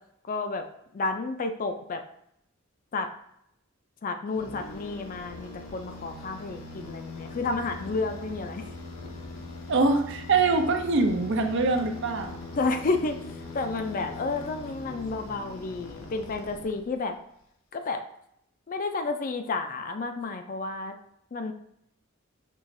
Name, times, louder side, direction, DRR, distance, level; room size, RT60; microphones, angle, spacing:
voice 1, 0.3-0.6 0.9-2.0 2.9-3.1 4.0-8.6 12.5-13.2 13.5-17.1 17.7-18.0 18.7-20.9 21.3-21.5, left 3 dB, 40° left, 7 dB, 0.4 m, -31 dB
sound 1, 4.3-17.1, left 2 dB, 80° left, 0.7 m, -41 dB
voice 2, 9.7-12.4, right 3 dB, 60° right, 5 dB, 0.5 m, -24 dB
5.5 x 2.9 x 2.6 m, 0.75 s
head